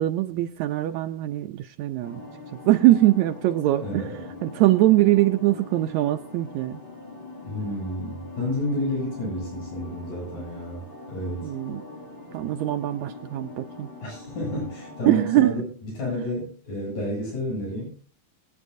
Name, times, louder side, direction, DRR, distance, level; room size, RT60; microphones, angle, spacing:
voice 1, 0.0-2.2 2.5-4.1 4.4-6.8 11.4-11.8 12.3-13.9 15.1-15.5, right 15 dB, 75° right, 6 dB, 1.9 m, -22 dB
sound 1, 2.0-15.5, left 2 dB, 25° left, 1.4 m, -42 dB
voice 2, 3.8-4.3 7.4-11.5 14.0-15.7 16.0-17.9, left 1 dB, 80° left, -3 dB, 9.2 m, -30 dB
23.5 x 9.3 x 2.7 m, 0.41 s
omnidirectional pair, 3.4 m